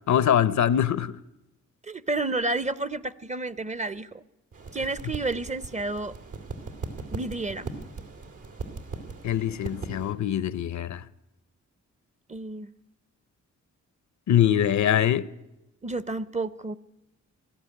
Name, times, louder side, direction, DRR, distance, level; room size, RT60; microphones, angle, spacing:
voice 1, 0.1-1.2 9.2-11.0 14.3-15.3, left 10 dB, 65° left, 0.7 m, -23 dB
voice 2, 1.8-4.2 4.7-6.1 7.1-7.7 12.3-12.7 15.8-16.7, right 2 dB, 25° right, 0.6 m, -30 dB
sound 1, 4.5-10.1, right 4 dB, 80° right, 3.0 m, -39 dB
20.0 x 13.5 x 9.9 m
cardioid pair, 90°, 30 cm